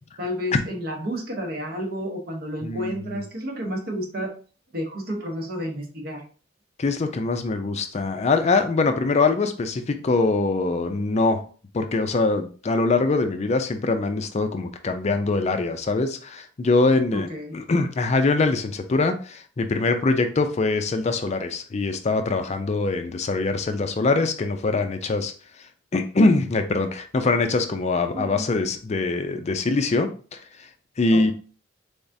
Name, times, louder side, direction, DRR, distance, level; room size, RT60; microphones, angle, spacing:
voice 1, 0.2-4.3 4.7-6.2 17.1-17.6 28.1-28.3 31.1-31.3, equal, 55° right, 2 dB, 1.0 m, -31 dB
voice 2, 2.6-3.2 6.8-11.4 11.7-17.3 17.5-25.3 25.9-30.7 31.0-31.3, left 3 dB, 35° left, 7 dB, 0.4 m, -23 dB
4.0 x 3.5 x 2.6 m, 0.39 s
head